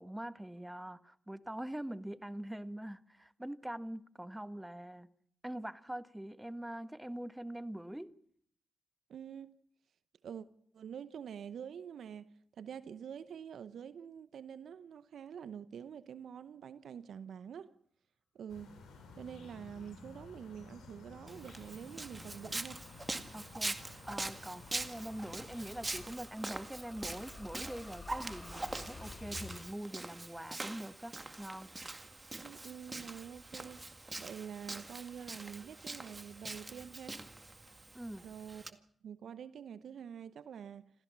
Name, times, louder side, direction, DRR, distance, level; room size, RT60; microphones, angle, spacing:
voice 1, 0.0-5.1 5.4-8.1 23.3-23.8 24.1-31.7 37.9-38.3, right 1 dB, 10° right, 1.6 m, -44 dB
voice 2, 9.1-9.5 10.2-10.5 10.7-12.3 12.6-17.7 18.3-18.7 19.1-22.8 32.4-33.8 34.2-37.2 38.2-40.9, right 8 dB, 75° right, 0.8 m, -46 dB
sound 1, 18.5-26.1, left 4 dB, 85° left, 7.1 m, -54 dB
Walk footsteps, 21.3-38.7, right 2 dB, 30° right, 2.0 m, -44 dB
sound 2, 21.9-29.7, left 4 dB, 55° left, 3.6 m, -53 dB
27.0 x 15.5 x 7.4 m
supercardioid pair, 40°, 0 cm